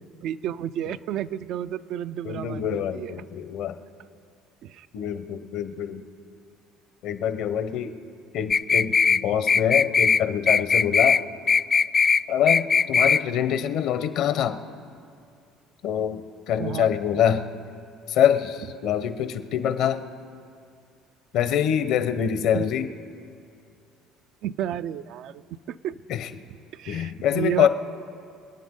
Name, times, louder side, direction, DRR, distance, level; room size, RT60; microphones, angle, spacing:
voice 1, 0.2-3.2 4.6-4.9 16.6-16.9 22.5-22.7 24.4-25.4 25.7-26.0 26.7-27.7, right 10 dB, 65° right, 13 dB, 0.4 m, -31 dB
voice 2, 2.2-3.8 4.9-6.0 7.0-7.9 8.3-11.2 12.3-14.6 15.8-17.5 18.1-20.0 21.3-22.9 26.1-26.3 26.9-27.7, left 9 dB, 65° left, 10 dB, 0.9 m, -25 dB
sound 1, 8.5-9.2 9.5-10.2 10.5-11.2 11.5-12.2 12.5-13.2, left 5 dB, 30° left, 0.3 m, -19 dB
26.5 x 9.3 x 3.8 m, 2.3 s
supercardioid pair, 90°, 0 cm